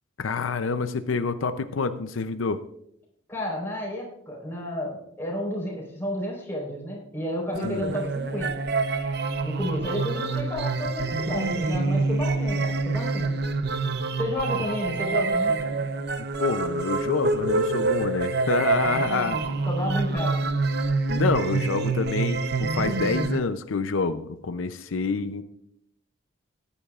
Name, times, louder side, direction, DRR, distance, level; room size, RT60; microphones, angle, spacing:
voice 1, 0.2-2.6 7.6-7.9 16.4-19.4 21.1-25.4, left 4 dB, 85° left, 10 dB, 0.6 m, -27 dB
voice 2, 3.3-8.5 9.4-13.4 14.2-15.5 19.7-20.5, left 1 dB, 10° left, -3 dB, 4.1 m, -31 dB
sound 1, 7.5-23.4, right 3 dB, 55° right, 0.7 m, -26 dB
19.0 x 10.0 x 2.4 m, 0.75 s
head